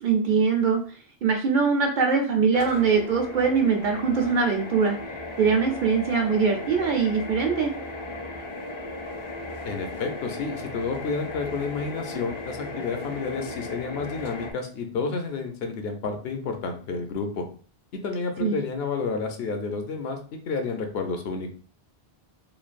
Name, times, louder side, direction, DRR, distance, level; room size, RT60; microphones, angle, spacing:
voice 1, 0.0-0.8 1.2-5.0 5.4-7.7 18.4-18.6, right 5 dB, 60° right, 2 dB, 0.6 m, -22 dB
sound 1, 2.5-14.5, left 2 dB, 40° left, 0.4 m, -36 dB
voice 2, 9.7-17.4 18.0-20.2 20.4-21.5, left 4 dB, 75° left, 5 dB, 0.8 m, -30 dB
3.1 x 2.2 x 2.4 m, 0.42 s
omnidirectional pair, 1.0 m